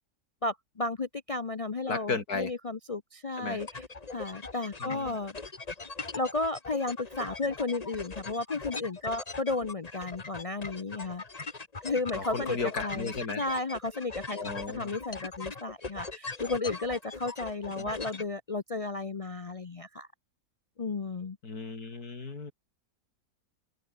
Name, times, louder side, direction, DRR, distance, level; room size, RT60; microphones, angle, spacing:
voice 1, 0.4-3.7 4.1-5.4 6.1-11.2 11.8-12.6 12.8-13.1 13.4-14.4 14.8-20.1 20.8-21.4, left 3 dB, 50° left, 0.4 m, -33 dB
voice 2, 1.9-2.5 3.4-3.6 4.8-5.2 12.1-13.4 14.3-14.9 17.8-17.9 21.4-22.5, left 4 dB, 70° left, 3.7 m, -35 dB
sound 1, 3.6-18.2, left 3 dB, 25° left, 1.5 m, -41 dB
omnidirectional pair, 1.7 m